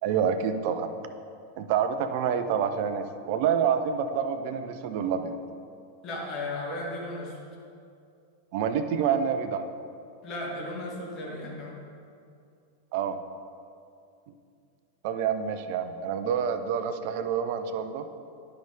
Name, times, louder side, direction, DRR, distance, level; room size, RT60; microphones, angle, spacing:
voice 1, 0.0-0.9 1.6-5.3 8.5-9.6 12.9-13.2 15.0-18.1, right 7 dB, 50° right, 9 dB, 0.5 m, -27 dB
voice 2, 6.0-7.4 10.2-11.8, left 1 dB, 35° left, -3 dB, 1.9 m, -35 dB
10.0 x 5.7 x 3.4 m, 2.4 s
figure-of-eight pair, 90°, 0 cm